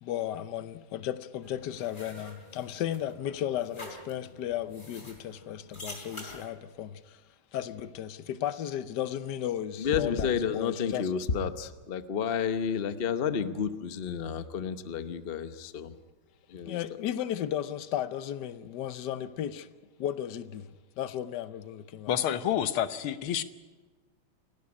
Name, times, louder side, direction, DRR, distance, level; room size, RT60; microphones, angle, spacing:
voice 1, 0.0-7.2 7.5-11.1 16.7-19.7 20.0-22.4, left 11 dB, 60° left, 1.3 m, -35 dB
sound 1, 1.4-6.5, left 1 dB, 20° left, 3.6 m, -47 dB
voice 2, 9.8-16.0 16.5-16.8, left 7 dB, 45° left, 0.7 m, -31 dB
voice 3, 22.1-23.4, left 10 dB, 85° left, 1.8 m, -28 dB
29.0 x 12.5 x 9.8 m
omnidirectional pair, 2.3 m